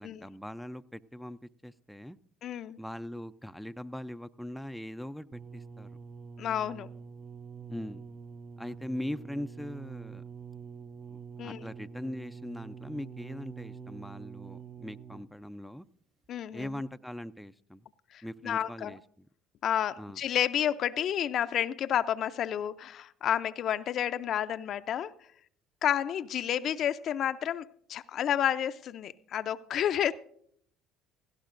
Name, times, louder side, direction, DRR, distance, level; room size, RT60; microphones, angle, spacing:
voice 1, 0.0-2.2 2.8-5.9 7.7-8.0 8.6-10.2 11.1-15.9 16.5-17.8 18.2-19.3 20.0-20.2, left 1 dB, ahead, 0.5 m, -41 dB
voice 2, 2.4-2.8 6.4-6.9 11.4-11.6 16.3-16.8 18.1-18.9 19.6-25.1 25.8-30.1, left 10 dB, 55° left, 0.5 m, -30 dB
sound 1, 5.3-15.4 16.2-16.3, right 6 dB, 35° right, 0.7 m, -46 dB
17.5 x 16.0 x 2.6 m
hypercardioid pair, 70°, 0 cm